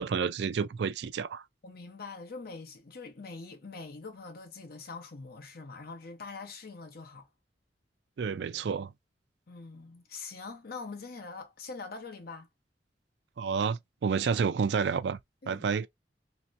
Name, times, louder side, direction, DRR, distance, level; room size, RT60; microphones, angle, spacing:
voice 1, 0.0-1.4 8.2-8.9 13.4-15.2 15.5-15.9, right 6 dB, 65° right, 0.4 m, -30 dB
voice 2, 1.6-7.3 9.5-12.5 15.4-15.7, left 4 dB, 55° left, 0.8 m, -43 dB
3.0 x 2.8 x 2.5 m
head